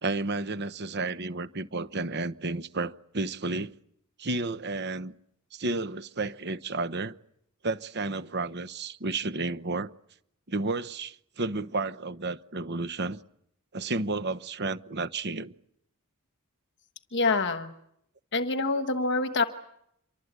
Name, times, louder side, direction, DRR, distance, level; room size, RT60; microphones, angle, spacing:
voice 1, 0.0-3.7 4.2-5.1 5.5-7.1 7.6-9.9 10.5-13.2 13.7-15.5, right 3 dB, 50° right, 1.0 m, -32 dB
voice 2, 17.1-17.7 18.3-19.4, left 3 dB, 55° left, 1.3 m, -26 dB
27.5 x 24.0 x 8.2 m
head